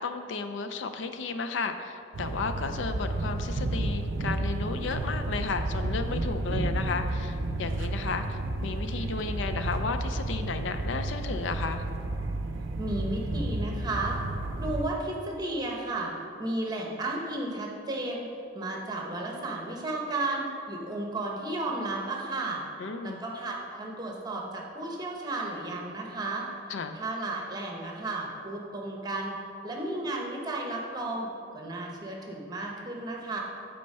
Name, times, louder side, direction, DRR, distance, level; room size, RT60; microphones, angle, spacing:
voice 1, 0.0-11.8 22.8-23.2 26.7-27.0, left 4 dB, 70° left, 8 dB, 0.4 m, -33 dB
sound 1, 2.1-14.9, right 2 dB, 75° right, 0.5 m, -31 dB
voice 2, 12.8-14.2 14.6-16.1 16.4-18.2 18.5-22.6 23.0-26.5 26.9-29.4 29.6-31.3 31.5-33.4, right 2 dB, 20° right, 0 dB, 0.9 m, -33 dB
8.5 x 4.4 x 5.4 m, 2.6 s
head